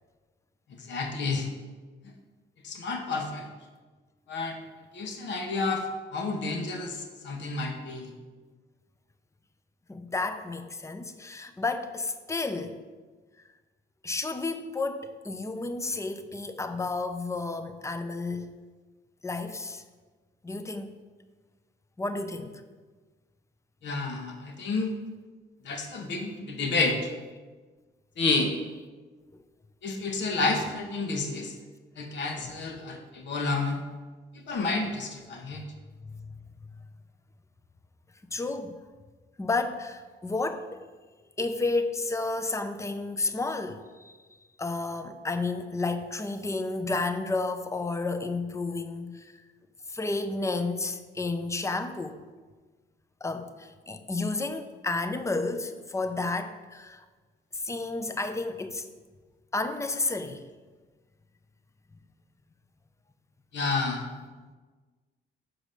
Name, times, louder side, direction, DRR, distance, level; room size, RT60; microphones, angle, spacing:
voice 1, 0.8-1.5 2.6-3.5 4.3-4.6 4.9-5.8 6.1-8.1 23.8-24.9 25.6-27.1 28.2-28.5 29.8-31.5 32.0-33.8 34.5-35.6 63.5-64.0, left 3 dB, 65° left, 3 dB, 1.2 m, -30 dB
voice 2, 9.9-12.8 14.0-18.5 19.2-19.8 20.4-20.9 22.0-22.6 32.4-32.6 36.0-36.4 38.3-38.8 39.4-40.8 41.4-44.1 44.6-49.3 49.9-52.2 53.2-57.0 57.5-58.9 59.5-60.4, left 3 dB, 15° left, 9 dB, 0.6 m, -31 dB
6.2 x 5.0 x 6.7 m, 1.4 s
cardioid pair, 90°, 20 cm